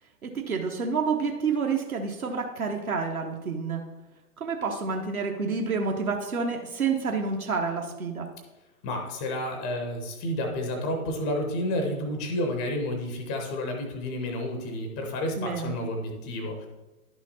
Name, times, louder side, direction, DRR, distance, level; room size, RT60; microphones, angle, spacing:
voice 1, 0.2-3.8 4.4-8.3 15.4-15.7, right 5 dB, 65° right, 2 dB, 1.1 m, -29 dB
voice 2, 8.8-16.7, left 1 dB, 5° left, 3 dB, 0.4 m, -30 dB
11.0 x 6.1 x 4.1 m, 1.1 s
figure-of-eight pair, 115°, 46 cm